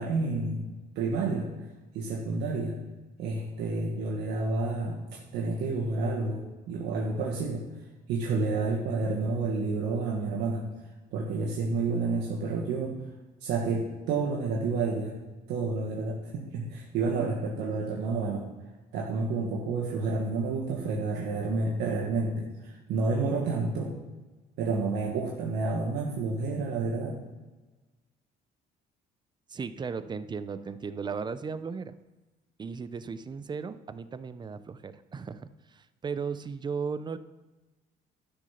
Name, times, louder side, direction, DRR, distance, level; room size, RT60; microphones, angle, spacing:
voice 1, 0.0-1.5 1.9-2.8 3.2-5.0 5.3-7.6 8.1-10.7 11.1-13.0 13.4-15.2 15.5-18.4 18.9-23.9 24.6-27.2, right 3 dB, 85° right, -2 dB, 1.6 m, -30 dB
voice 2, 29.5-31.9 32.6-37.2, right 5 dB, 25° right, 13 dB, 0.6 m, -36 dB
12.0 x 6.2 x 5.8 m, 1.2 s
cardioid pair, 110°, 17 cm